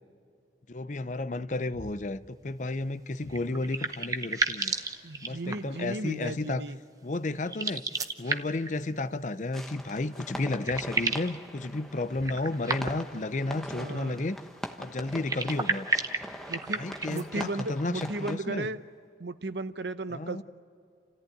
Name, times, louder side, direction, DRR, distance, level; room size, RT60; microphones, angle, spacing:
voice 1, 0.7-4.7 5.2-6.6 7.0-7.8 8.2-14.4 14.8-15.9 16.8-18.7 20.1-20.4, left 2 dB, 40° left, 0.6 m, -32 dB
sound 1, 1.7-2.1 3.2-3.5 4.7-5.2 6.2-6.3 7.7-7.9 10.6-10.9 12.1-12.4 13.6-14.0 15.1-15.2 16.6-16.8, equal, 45° right, 5.4 m, -50 dB
sound 2, 3.3-5.8 7.4-8.7 10.1-10.2 10.4-11.4 12.2-13.2 15.1-17.3, right 3 dB, 20° right, 0.8 m, -32 dB
voice 2, 5.0-6.8 13.7-14.2 16.5-16.8 17.1-18.8 19.2-20.4, right 2 dB, 70° right, 0.8 m, -35 dB
sound 3, 9.5-18.4, equal, ahead, 1.1 m, -42 dB
29.5 x 14.5 x 9.3 m
head